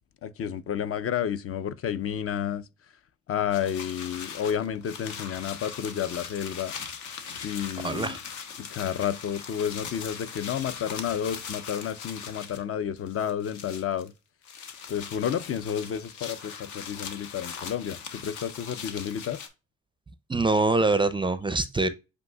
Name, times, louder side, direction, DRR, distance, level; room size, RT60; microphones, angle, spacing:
voice 1, 0.2-2.7 3.3-6.7 7.4-8.2 8.6-14.1 14.9-19.4, left 9 dB, 50° left, 0.5 m, -31 dB
sound 1, 3.5-12.6 13.0-14.1 14.4-19.5, left 6 dB, 75° left, 0.9 m, -40 dB
voice 2, 7.8-8.2 20.3-21.9, right 3 dB, 15° right, 0.4 m, -24 dB
7.8 x 2.7 x 2.2 m
cardioid pair, 90°, 30 cm